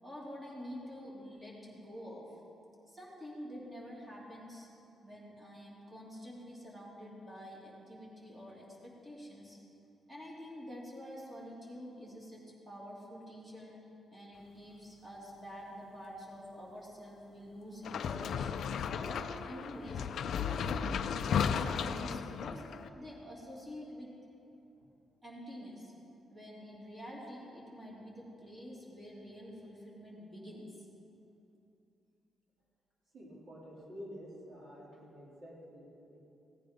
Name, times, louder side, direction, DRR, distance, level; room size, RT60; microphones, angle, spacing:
voice 1, 0.0-2.2 2.9-4.7 5.0-9.6 10.1-13.8 14.1-20.1 20.3-22.6 22.9-24.1 25.2-25.9 26.3-30.9, equal, 15° right, -5 dB, 2.8 m, -47 dB
sound 1, 17.8-22.9, left 7 dB, 60° left, 0.4 m, -34 dB
voice 2, 33.1-36.2, equal, 50° right, -5 dB, 3.1 m, -50 dB
17.0 x 9.4 x 5.2 m, 2.8 s
wide cardioid pair, 175°, 0 cm